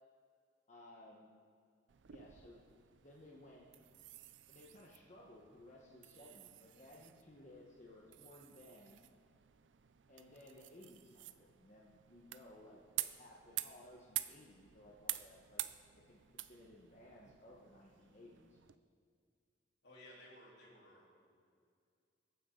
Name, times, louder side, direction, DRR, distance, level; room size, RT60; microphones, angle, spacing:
voice 1, 0.7-1.3 2.1-2.6 2.9-3.7 4.5-9.1 10.1-15.6 15.9-18.6, left 1 dB, 40° left, -4 dB, 1.3 m, -59 dB
sound 1, 1.9-18.8, right 14 dB, 90° right, 0.5 m, -49 dB
voice 2, 19.8-21.5, left 1 dB, 70° left, -4 dB, 3.9 m, -59 dB
21.5 x 9.4 x 3.9 m, 2.2 s
head